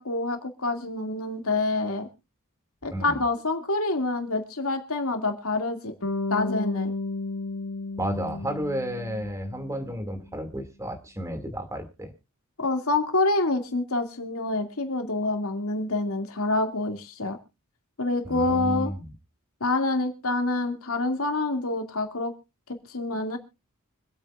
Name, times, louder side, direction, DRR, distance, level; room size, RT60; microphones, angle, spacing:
voice 1, 0.0-2.1 2.8-5.9 6.3-6.9 12.6-17.4 18.0-18.9 19.6-22.3 22.9-23.4, left 2 dB, 90° left, 5 dB, 2.4 m, -27 dB
voice 2, 2.9-3.2 8.0-12.1 18.2-19.1, right 1 dB, 15° right, 7 dB, 2.4 m, -32 dB
Bass guitar, 6.0-10.1, left 2 dB, 65° left, 1.9 m, -33 dB
25.5 x 8.7 x 2.5 m, 0.29 s
head